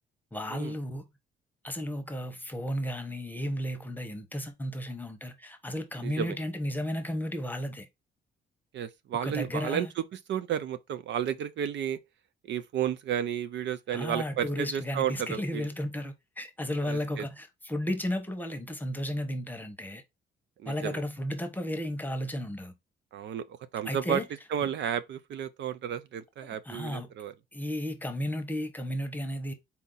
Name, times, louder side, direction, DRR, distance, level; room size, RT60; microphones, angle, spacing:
voice 1, 0.3-1.0 1.6-7.9 9.2-9.9 13.9-20.0 20.6-22.7 23.8-24.2 26.4-27.1 27.5-29.5, equal, 10° left, 1.0 m, -34 dB
voice 2, 6.0-6.4 8.7-12.0 12.5-15.7 16.8-17.3 20.6-21.0 23.1-24.2 24.5-27.3, right 9 dB, 65° right, 0.5 m, -32 dB
4.2 x 2.7 x 3.9 m
cardioid pair, 90°, 20 cm